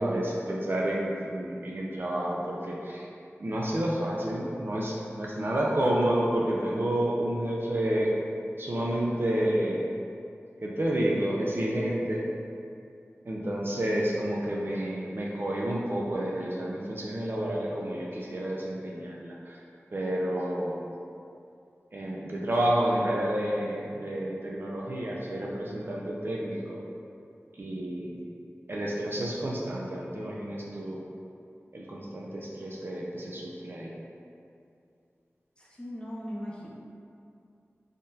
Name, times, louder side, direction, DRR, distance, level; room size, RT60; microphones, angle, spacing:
voice 1, 0.0-3.1 3.4-8.1 8.6-9.9 10.6-12.2 13.3-19.6 19.9-20.8 21.9-26.8 27.6-28.2 28.7-31.0 31.7-33.9, right 1 dB, 50° right, -4 dB, 0.4 m, -30 dB
voice 2, 35.6-36.7, equal, 20° left, -6 dB, 0.6 m, -38 dB
3.5 x 2.3 x 2.7 m, 2.5 s
wide cardioid pair, 55°, 5 cm